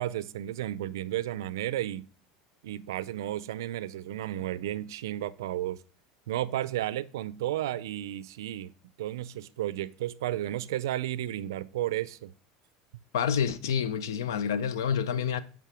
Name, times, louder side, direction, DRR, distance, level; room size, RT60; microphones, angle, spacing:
voice 1, 0.0-2.1 2.6-5.8 6.3-8.7 9.0-12.3, right 13 dB, 85° right, 0.4 m, -33 dB
voice 2, 13.1-15.4, left 7 dB, 90° left, 0.5 m, -28 dB
8.3 x 3.5 x 4.9 m
supercardioid pair, 100°, 2 cm